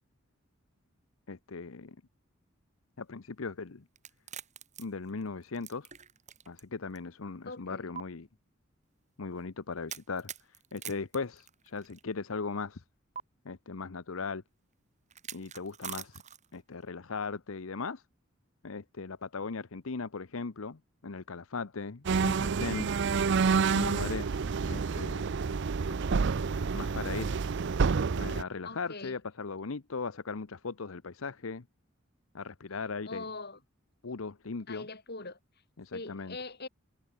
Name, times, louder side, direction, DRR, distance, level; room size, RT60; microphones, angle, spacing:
voice 1, 1.3-2.0 3.0-3.8 4.8-5.9 6.5-8.3 9.2-12.8 13.4-14.4 15.3-16.2 16.5-18.0 18.6-22.9 23.6-25.3 26.7-27.3 28.1-31.7 32.3-33.2 34.0-34.8 35.8-36.4, left 4 dB, 75° left, 0.8 m, -38 dB
sound 1, 4.0-6.6 6.9-7.0 7.9-8.0 9.9-12.0 13.1-13.2 15.1-16.6, right 8 dB, 35° right, 3.3 m, -44 dB
voice 2, 7.4-7.9 28.6-29.2 33.1-33.6 34.7-35.4 35.9-36.7, left 3 dB, 50° left, 7.3 m, -42 dB
sound 2, 22.0-28.4, right 5 dB, 60° right, 0.5 m, -28 dB
head